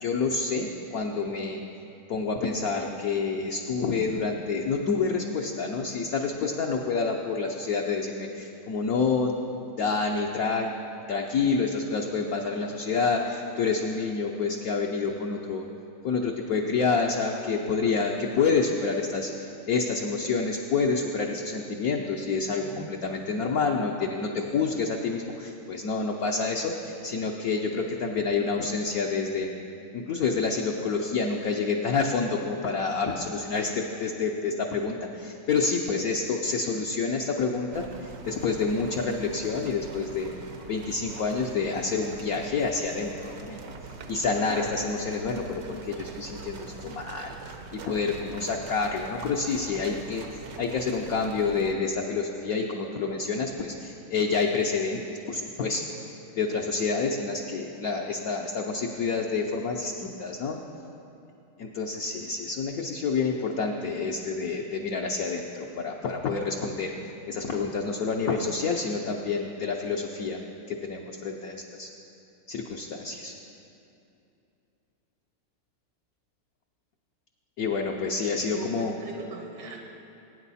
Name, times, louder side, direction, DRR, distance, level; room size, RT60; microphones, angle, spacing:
voice 1, 0.0-1.6 2.1-9.3 9.8-10.7 11.1-15.7 16.0-29.5 29.9-37.9 38.2-40.3 40.7-43.6 44.1-47.3 47.7-55.9 56.4-60.6 61.6-66.9 67.3-70.4 70.7-71.9 72.5-73.3 77.6-78.9, left 4 dB, 65° left, 1 dB, 0.9 m, -28 dB
voice 2, 22.6-22.9 78.5-79.8, right 3 dB, 75° right, 1 dB, 2.0 m, -40 dB
sound 1, 37.7-51.7, right 4 dB, 60° right, 1.0 m, -42 dB
18.5 x 9.0 x 4.2 m, 2.7 s
omnidirectional pair, 2.3 m